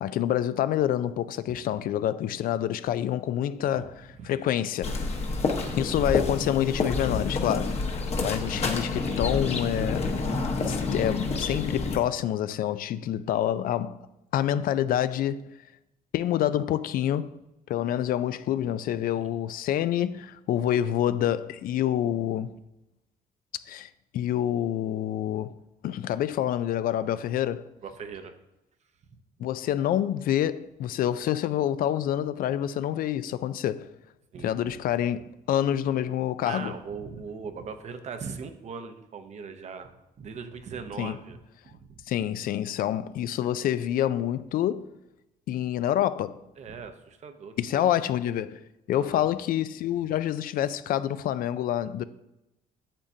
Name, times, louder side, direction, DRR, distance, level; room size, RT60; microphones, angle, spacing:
voice 1, 0.0-5.0 5.8-10.1 10.7-14.0 14.3-15.4 16.1-17.3 17.7-22.5 23.7-25.5 25.8-27.7 29.4-33.9 34.4-36.7 41.0-41.2 42.1-44.9 45.5-46.4 47.6-48.6 48.9-52.0, left 11 dB, 65° left, 0.4 m, -27 dB
sound 1, 4.8-12.0, left 3 dB, 40° left, 1.0 m, -28 dB
voice 2, 5.5-5.9 8.2-8.3 19.2-19.3 27.8-28.3 34.3-34.5 36.4-39.9 40.2-41.4 41.7-42.0 46.6-47.9 48.9-49.3, right 5 dB, 45° right, 0.7 m, -40 dB
8.7 x 7.2 x 2.7 m
cardioid pair, 130°, 16 cm